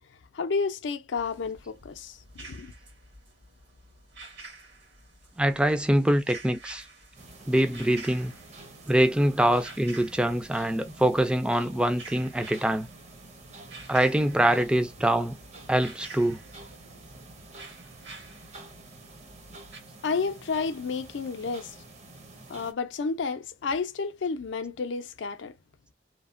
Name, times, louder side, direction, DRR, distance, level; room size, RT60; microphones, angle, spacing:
voice 1, 0.3-2.7 20.0-21.8 22.5-25.5, left 4 dB, 85° left, 0.5 m, -31 dB
sound 1, 1.1-19.8, right 3 dB, 75° right, 1.6 m, -49 dB
voice 2, 5.4-6.8 7.5-8.3 8.9-12.9 13.9-15.4 15.7-16.4, right 1 dB, 5° right, 0.3 m, -24 dB
sound 2, 7.2-22.7, right 2 dB, 40° right, 0.7 m, -49 dB
3.1 x 2.1 x 2.5 m
head